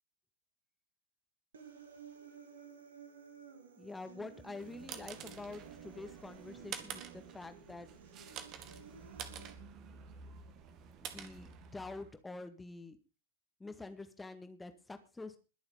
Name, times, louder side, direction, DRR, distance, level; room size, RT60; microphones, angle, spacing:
Human voice, 1.5-9.5, right 6 dB, 65° right, 2.6 m, -54 dB
voice 1, 3.8-7.9 11.0-13.0 13.6-15.4, left 3 dB, 10° left, 8 dB, 2.0 m, -47 dB
sound 1, 4.4-12.1, right 8 dB, 35° right, 2.0 m, -49 dB
21.5 x 7.2 x 5.2 m, 0.33 s
figure-of-eight pair, 90°, 0 cm